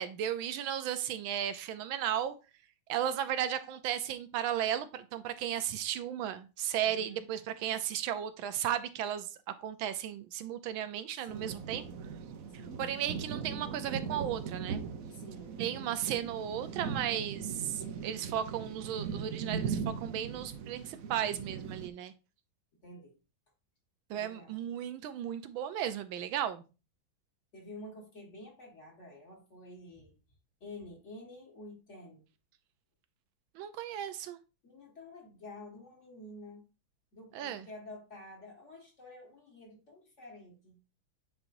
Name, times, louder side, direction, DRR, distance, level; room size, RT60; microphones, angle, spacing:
voice 1, 0.0-2.3 2.9-9.3 9.6-11.8 12.8-14.8 15.6-22.1 24.1-26.6 33.5-34.4 37.3-37.7, right 10 dB, 80° right, 1.4 m, -35 dB
voice 2, 6.8-7.3 11.1-11.7 12.6-12.9 15.1-16.0 22.8-23.1 24.1-24.8 27.5-30.2 30.6-32.2 34.6-36.7 37.1-40.8, left 1 dB, 40° left, 1.8 m, -50 dB
sound 1, 11.3-21.9, right 6 dB, 65° right, 0.9 m, -39 dB
8.8 x 4.3 x 2.6 m
omnidirectional pair, 2.2 m